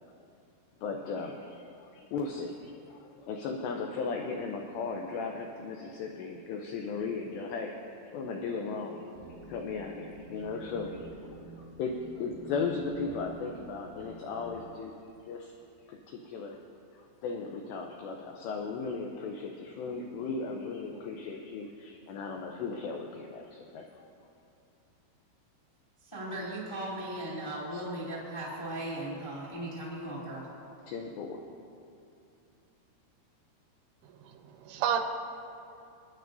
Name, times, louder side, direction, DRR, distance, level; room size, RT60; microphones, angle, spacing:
voice 1, 0.8-9.0 9.5-11.1 11.6-14.9 15.2-15.5 15.9-16.6 16.9-24.1 30.9-31.4, left 4 dB, 85° left, 2 dB, 2.4 m, -36 dB
sound 1, 9.1-14.6, right 1 dB, 65° right, 2.1 m, -48 dB
voice 2, 26.0-30.5, right 1 dB, 15° left, -7 dB, 0.8 m, -37 dB
voice 3, 34.2-35.0, right 9 dB, 85° right, 5 dB, 3.3 m, -30 dB
26.5 x 10.0 x 2.7 m, 2.6 s
omnidirectional pair, 5.8 m